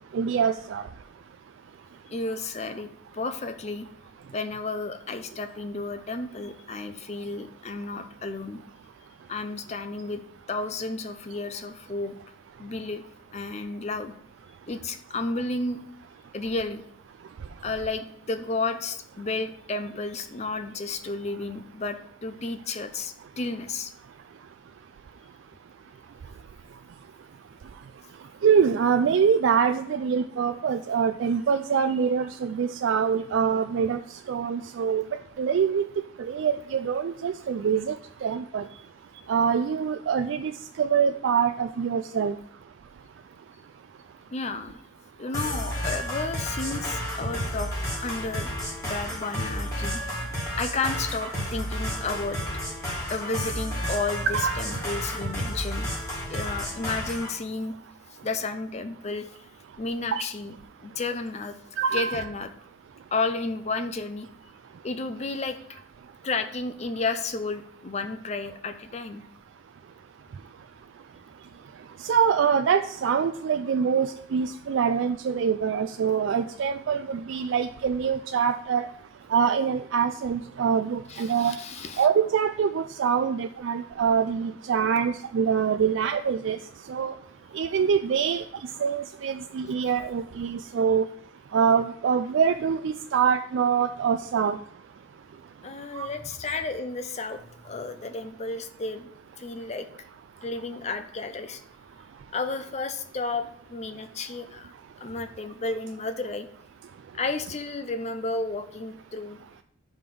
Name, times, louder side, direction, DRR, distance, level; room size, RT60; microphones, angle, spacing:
voice 1, 0.1-0.8 28.4-34.0 34.3-35.0 35.4-35.9 36.3-38.0 38.2-38.6 39.3-40.5 40.8-42.3 54.3-54.5 60.1-60.2 61.8-62.3 72.0-78.9 79.3-81.5 82.0-86.6 86.9-87.1 87.5-88.4 88.8-91.1 91.5-94.6 95.9-96.1, right 7 dB, 70° right, 8 dB, 0.3 m, -24 dB
voice 2, 2.1-2.9 3.1-3.9 4.3-8.6 9.3-10.2 10.5-12.1 12.6-13.0 13.3-14.1 14.7-15.8 16.3-16.8 17.6-23.9 44.3-44.8 45.2-47.7 48.0-48.5 48.8-50.1 50.5-52.4 53.1-55.9 56.3-57.8 58.2-59.3 59.8-60.6 60.8-61.6 61.9-62.5 63.1-64.3 64.8-65.8 66.2-69.2 81.1-82.1 95.6-99.1 99.4-99.9 100.4-101.6 102.3-104.7 105.0-106.5 107.1-109.4, left 3 dB, 35° left, 9 dB, 0.6 m, -32 dB
sound 1, 45.3-57.3, equal, 15° left, 1.8 m, -31 dB
5.3 x 5.1 x 6.0 m, 0.65 s
head